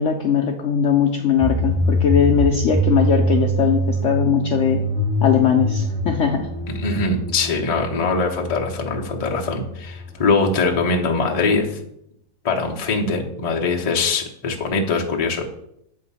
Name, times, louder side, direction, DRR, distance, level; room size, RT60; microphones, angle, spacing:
voice 1, 0.0-4.8 5.2-6.5, left 7 dB, 65° left, 2 dB, 0.7 m, -20 dB
sound 1, 1.4-10.2, equal, 15° left, 1.4 m, -24 dB
voice 2, 6.7-11.8 12.4-15.4, left 3 dB, 35° left, 0 dB, 0.6 m, -22 dB
7.7 x 2.8 x 5.4 m, 0.77 s
omnidirectional pair, 1.7 m